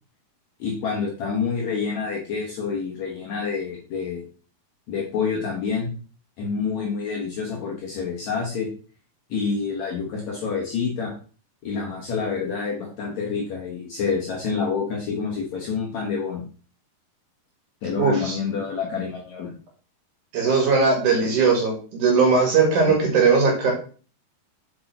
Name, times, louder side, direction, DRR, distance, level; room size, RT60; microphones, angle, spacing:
voice 1, 0.6-4.2 4.9-5.9 6.4-8.7 9.3-11.1 11.6-16.4 17.8-19.5 22.9-23.0, left 5 dB, 60° left, -2 dB, 2.0 m, -28 dB
voice 2, 18.0-18.4 20.3-23.7, right 4 dB, 55° right, 0 dB, 3.1 m, -19 dB
8.2 x 4.7 x 4.2 m, 0.39 s
omnidirectional pair, 4.6 m